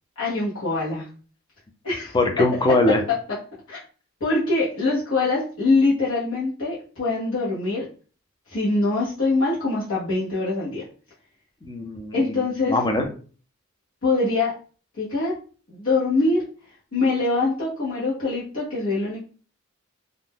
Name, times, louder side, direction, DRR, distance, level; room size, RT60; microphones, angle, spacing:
voice 1, 0.2-1.1 1.8-2.2 3.7-3.8 4.2-7.9 8.5-10.8 12.1-12.8 14.0-14.5 14.9-15.4 15.7-16.4 16.9-19.2, left 3 dB, 75° left, -8 dB, 1.0 m, -23 dB
voice 2, 2.1-3.0 11.6-13.0, left 2 dB, 20° left, 3 dB, 0.5 m, -22 dB
2.5 x 2.1 x 3.5 m, 0.39 s
head